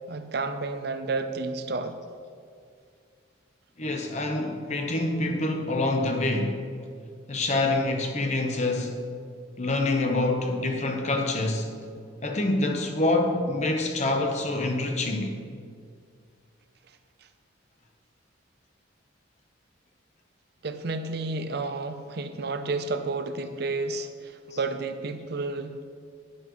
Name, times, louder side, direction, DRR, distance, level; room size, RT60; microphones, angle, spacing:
voice 1, 0.1-2.0 20.6-25.8, right 3 dB, 55° right, 9 dB, 0.6 m, -31 dB
voice 2, 3.8-6.6 7.3-9.0 9.6-11.7 12.2-15.3 24.5-24.6, left 2 dB, 35° left, 4 dB, 0.9 m, -26 dB
11.0 x 10.5 x 3.1 m, 2.2 s
head